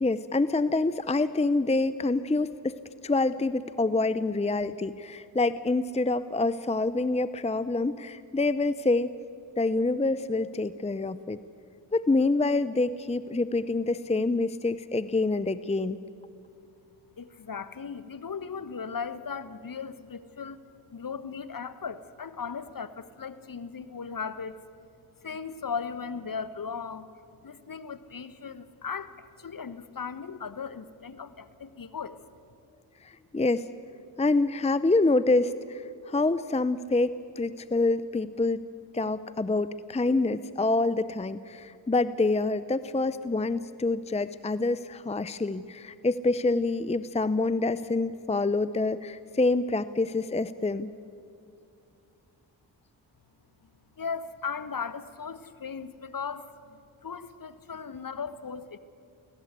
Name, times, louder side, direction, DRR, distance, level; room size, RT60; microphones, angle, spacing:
voice 1, 0.0-2.8 3.0-9.1 9.6-11.4 11.9-16.0 33.0-33.7 34.2-38.6 38.9-50.9, left 3 dB, 15° left, 14 dB, 0.7 m, -26 dB
voice 2, 17.2-20.6 20.9-24.6 25.2-27.1 27.4-32.2 54.0-58.8, left 6 dB, 45° left, 14 dB, 1.4 m, -37 dB
25.0 x 17.0 x 8.3 m, 2.4 s
supercardioid pair, 40°, 47 cm